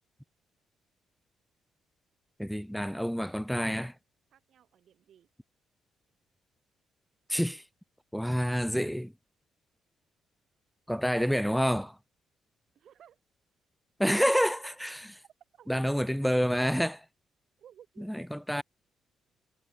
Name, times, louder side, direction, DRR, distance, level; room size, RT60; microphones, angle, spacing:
voice 1, 2.4-3.9 7.3-7.6 8.1-9.1 10.9-12.0 14.0-15.2 15.7-17.1 18.0-18.6, equal, ahead, 0.3 m, -28 dB
voice 2, 4.3-5.3 12.7-13.2 14.2-14.4 15.2-15.7 17.6-18.0, right 9 dB, 65° right, 1.6 m, -55 dB
cardioid pair, 90°, 0 cm